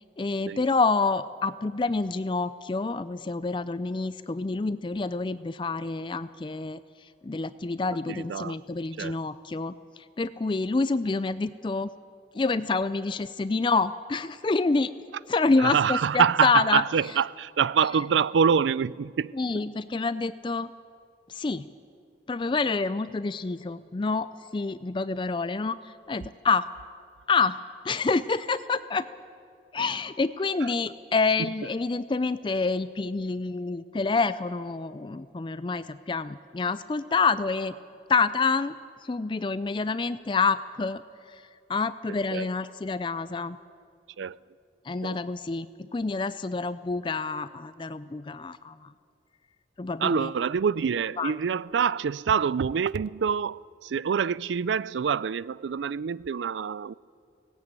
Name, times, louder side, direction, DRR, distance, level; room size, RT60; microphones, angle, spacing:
voice 1, 0.2-11.9 12.3-14.9 15.3-16.8 19.3-20.7 21.3-21.7 22.3-26.6 27.3-27.6 27.8-29.1 29.7-37.7 38.1-38.7 39.0-41.0 41.3-41.4 41.7-43.6 44.9-48.9 49.8-50.3 51.2-51.4, left 4 dB, 25° left, 0.4 m, -27 dB
voice 2, 8.1-8.6 9.0-9.2 15.6-19.4 42.3-42.5 44.2-44.4 45.0-45.2 50.0-56.9, right 7 dB, 90° right, 0.4 m, -26 dB
17.5 x 16.5 x 8.9 m
head